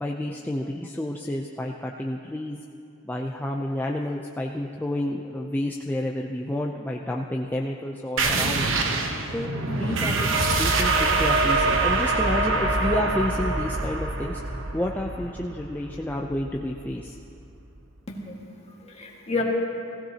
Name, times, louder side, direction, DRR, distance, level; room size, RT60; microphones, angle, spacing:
voice 1, 0.0-2.6 3.0-8.7 9.3-10.3 10.6-14.5 14.7-17.2, left 1 dB, 10° left, 0 dB, 0.5 m, -30 dB
sound 1, 8.2-17.4, right 3 dB, 70° right, 1.0 m, -25 dB
voice 2, 9.7-10.1 18.1-19.4, left 3 dB, 35° left, -2 dB, 1.8 m, -32 dB
17.5 x 15.5 x 2.8 m, 2.7 s
head